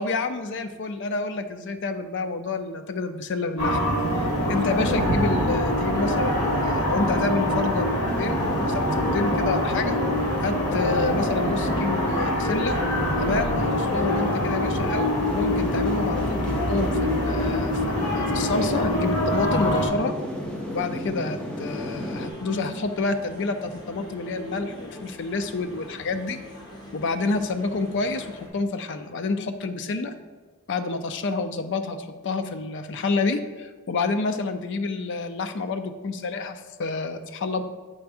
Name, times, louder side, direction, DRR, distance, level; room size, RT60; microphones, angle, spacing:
voice 1, 0.0-3.8 4.5-10.0 10.4-12.8 13.2-20.1 20.7-26.4 26.9-30.1 30.7-37.6, left 3 dB, 55° left, 8 dB, 0.5 m, -28 dB
sound 1, 3.6-19.9, left 1 dB, 80° left, 1.8 m, -24 dB
sound 2, 8.1-22.3, equal, 5° left, 0.9 m, -35 dB
sound 3, 21.6-28.5, left 1 dB, 20° left, 1.2 m, -42 dB
7.6 x 3.5 x 4.8 m, 1.3 s
head